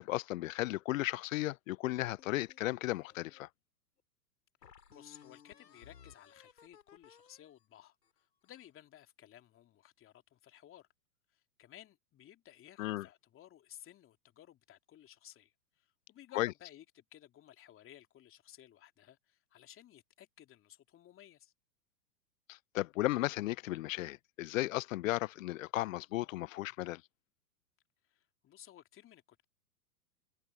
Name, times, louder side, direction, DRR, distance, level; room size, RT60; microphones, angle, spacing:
voice 1, 0.0-3.5 12.8-13.0 16.4-16.5 22.5-27.0, left 17 dB, 50° left, 0.8 m, -35 dB
sound 1, 1.9-3.4 4.0-4.1 4.6-8.8, left 8 dB, 80° left, 7.6 m, -60 dB
voice 2, 4.6-10.9 11.3-21.5 28.0-29.4, left 12 dB, 25° left, 2.9 m, -57 dB
hypercardioid pair, 110°, 50 cm